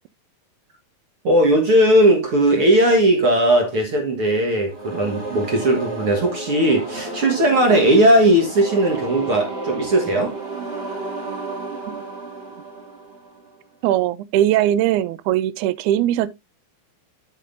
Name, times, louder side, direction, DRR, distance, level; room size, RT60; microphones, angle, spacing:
voice 1, 1.2-10.3, right 1 dB, 55° right, 1.7 m, -17 dB
sound 1, 4.7-13.6, right 2 dB, 25° right, 1.5 m, -32 dB
voice 2, 13.8-16.3, right 12 dB, 90° right, 1.7 m, -20 dB
11.5 x 6.0 x 2.6 m
omnidirectional pair, 4.2 m